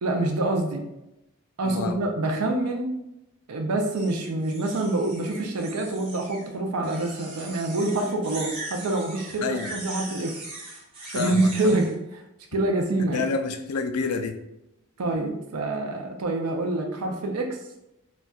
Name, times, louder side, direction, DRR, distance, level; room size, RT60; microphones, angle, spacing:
voice 1, 0.0-0.8 1.6-3.0 3.5-10.4 11.1-12.2 12.5-13.3 15.0-17.6, right 2 dB, 85° right, 2 dB, 0.5 m, -26 dB
voice 2, 1.6-2.0 9.4-9.8 11.1-11.5 13.1-14.4, left 4 dB, 80° left, 6 dB, 0.4 m, -28 dB
sound 1, 3.9-6.5 6.8-11.9, right 2 dB, 25° right, 0.9 m, -40 dB
4.0 x 2.2 x 2.3 m, 0.89 s
head